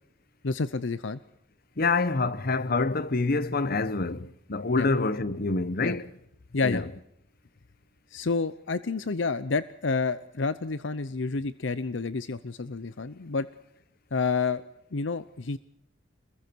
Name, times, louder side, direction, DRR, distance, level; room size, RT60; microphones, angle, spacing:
voice 1, 0.4-1.2 4.8-4.9 5.8-6.0 6.5-6.8 8.1-13.5 14.1-14.6 14.9-15.6, left 4 dB, 70° left, 0.7 m, -29 dB
voice 2, 1.8-6.1 6.6-6.9, left 3 dB, 50° left, 1.0 m, -26 dB
28.0 x 21.5 x 4.6 m
head